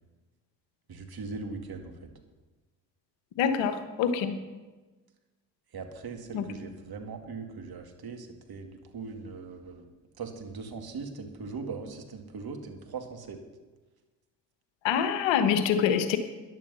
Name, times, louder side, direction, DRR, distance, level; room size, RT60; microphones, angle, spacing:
voice 1, 0.9-2.1 5.7-9.8 10.2-13.4, right 4 dB, 55° right, 4 dB, 2.3 m, -40 dB
voice 2, 3.4-4.3 6.3-6.5 14.8-16.2, left 7 dB, 75° left, 9 dB, 1.3 m, -25 dB
14.5 x 10.5 x 5.8 m, 1.2 s
hypercardioid pair, 45°, 45 cm